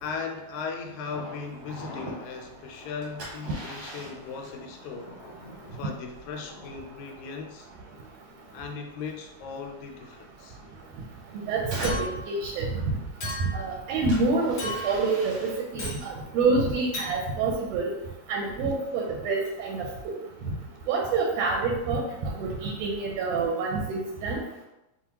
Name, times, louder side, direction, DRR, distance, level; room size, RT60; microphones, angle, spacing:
voice 1, 0.0-7.7 8.5-10.6, left 5 dB, 85° left, 3 dB, 1.9 m, -38 dB
Thunder, 1.1-8.8 9.1-9.2 9.6-9.7, left 2 dB, 65° left, 1.3 m, -46 dB
sound 1, 1.2-19.6, equal, 60° right, 1.1 m, -45 dB
voice 2, 11.3-12.7 13.5-14.6 14.8-17.9 18.3-20.1 20.9-24.4, right 3 dB, 75° right, 0 dB, 1.6 m, -27 dB
Chink clink, 11.8-12.3 13.2-13.7 14.6-15.1 15.8-16.0 16.9-17.1, left 1 dB, 45° left, 1.5 m, -35 dB
5.6 x 2.4 x 2.9 m, 0.92 s
omnidirectional pair, 3.3 m